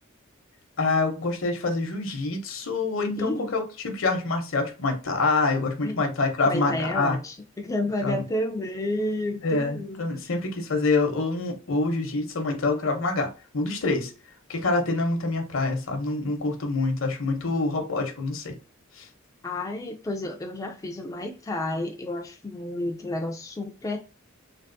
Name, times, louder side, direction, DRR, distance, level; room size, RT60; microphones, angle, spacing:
voice 1, 0.8-7.2 8.0-8.2 9.4-14.1 14.5-18.6 18.9-19.1, left 3 dB, 70° left, 0.8 m, -26 dB
voice 2, 3.2-3.6 5.8-6.0 6.4-10.0 19.4-24.0, left 1 dB, 15° left, 0.3 m, -30 dB
3.4 x 2.4 x 2.6 m
head